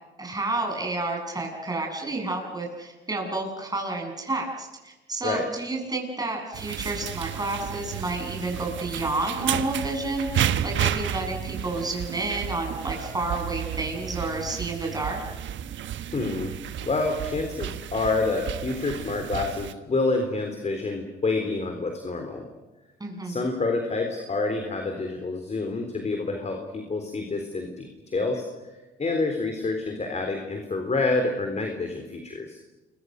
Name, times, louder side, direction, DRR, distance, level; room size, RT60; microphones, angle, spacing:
voice 1, 0.2-15.2 23.0-23.5, right 2 dB, 20° right, 1 dB, 7.6 m, -30 dB
sound 1, 6.5-19.7, right 10 dB, 70° right, 1.2 m, -32 dB
voice 2, 16.1-16.5 16.8-22.5 23.2-28.5 29.0-32.6, left 3 dB, 35° left, 4 dB, 3.8 m, -28 dB
29.0 x 23.5 x 6.6 m, 1.1 s
cardioid pair, 90°, 20 cm